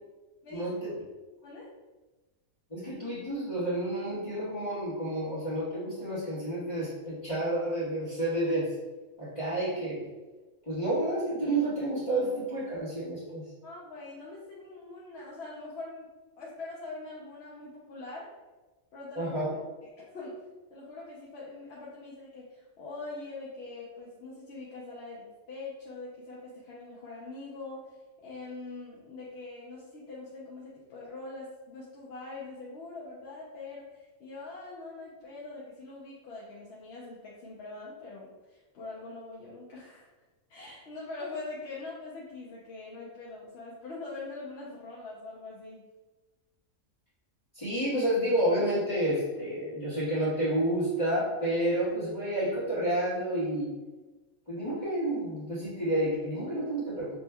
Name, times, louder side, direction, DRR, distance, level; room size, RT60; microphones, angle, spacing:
voice 1, 0.5-0.9 2.7-8.7 9.2-10.1 10.7-13.4 19.1-19.5 47.5-53.7 54.5-57.1, right 1 dB, 25° left, -13 dB, 1.5 m, -30 dB
voice 2, 13.6-16.1 16.4-18.3 18.9-19.4 20.0-20.4 20.7-40.1 40.5-45.8, left 3 dB, 55° left, -6 dB, 0.9 m, -43 dB
5.2 x 3.1 x 2.3 m, 1.2 s
omnidirectional pair, 1.5 m